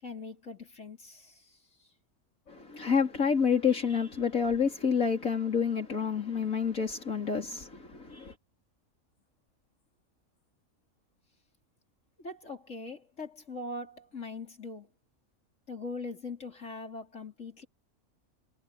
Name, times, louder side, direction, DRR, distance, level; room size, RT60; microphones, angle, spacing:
voice 1, 0.0-1.9 12.2-14.9 15.7-17.7, left 3 dB, 65° left, 4.9 m, -41 dB
voice 2, 2.5-8.3, left 6 dB, 80° left, 4.3 m, -28 dB
omnidirectional pair, 1.4 m